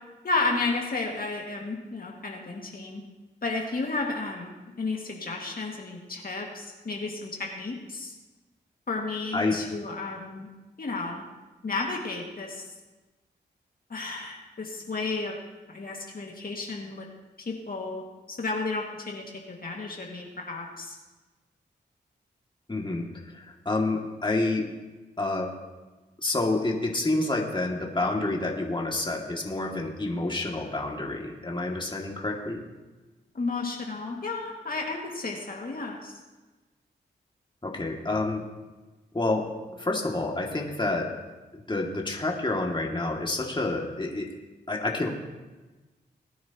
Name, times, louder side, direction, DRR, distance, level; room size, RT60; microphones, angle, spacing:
voice 1, 0.2-3.0 3.4-4.5 4.8-8.1 8.9-10.5 10.8-11.2 11.6-12.6 13.9-15.4 15.7-17.0 17.5-18.0 18.3-21.0 33.3-36.2, left 3 dB, 50° left, -1 dB, 2.1 m, -32 dB
voice 2, 22.7-24.7 25.2-25.5 26.2-32.6 37.6-38.4 39.1-41.1 41.5-44.3 44.7-45.1, left 2 dB, 25° left, -1 dB, 2.3 m, -28 dB
20.5 x 9.4 x 3.0 m, 1.2 s
cardioid pair, 45°, 19 cm